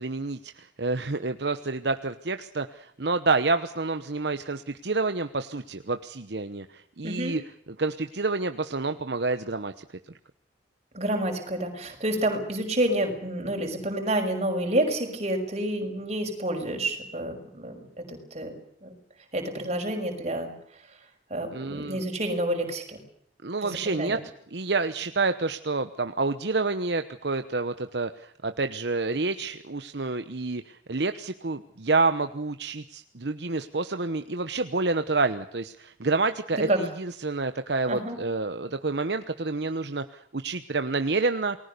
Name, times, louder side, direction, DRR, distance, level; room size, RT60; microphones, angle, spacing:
voice 1, 0.0-7.4 7.8-9.8 21.5-22.1 23.4-24.2 24.5-41.6, right 3 dB, 65° right, 9 dB, 1.1 m, -28 dB
voice 2, 7.0-7.3 10.9-18.9 19.3-20.5 21.3-23.0 23.6-24.2 36.6-36.8 37.9-38.2, right 1 dB, 35° right, 3 dB, 5.9 m, -29 dB
29.0 x 20.0 x 6.8 m, 0.69 s
head